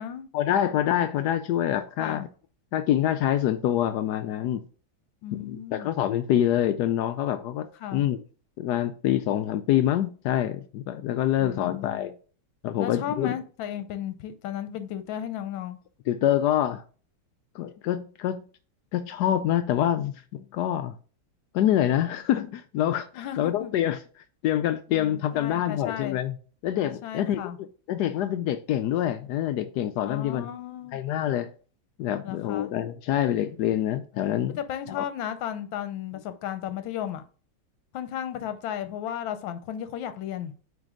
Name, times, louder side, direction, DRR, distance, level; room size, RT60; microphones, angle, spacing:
voice 1, 0.3-2.3 2.7-4.6 5.4-8.2 8.6-12.1 12.6-13.4 16.1-16.8 17.5-18.4 18.9-21.0 21.5-24.0 24.4-26.4 26.6-30.5 30.9-31.5 32.0-34.6 34.9-35.0, left 11 dB, 90° left, 0.8 m, -26 dB
voice 2, 5.2-5.9 7.8-8.1 11.4-12.1 12.8-15.8 23.1-23.7 24.9-26.2 27.0-27.6 30.1-31.0 32.2-32.7 34.6-37.2 37.9-40.5, left 10 dB, 70° left, 1.4 m, -34 dB
9.0 x 3.4 x 3.7 m
omnidirectional pair, 2.3 m